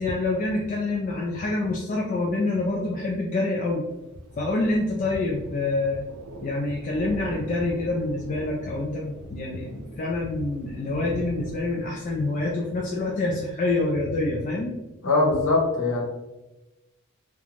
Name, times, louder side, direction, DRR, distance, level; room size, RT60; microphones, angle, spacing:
voice 1, 0.0-3.8 4.4-6.1 6.4-14.7, left 2 dB, 35° left, -2 dB, 0.3 m, -26 dB
Thunder, 3.9-13.9, right 2 dB, 85° right, 0.4 m, -42 dB
voice 2, 15.0-16.0, left 2 dB, 60° left, -3 dB, 0.9 m, -21 dB
2.4 x 2.1 x 3.0 m, 1.0 s
head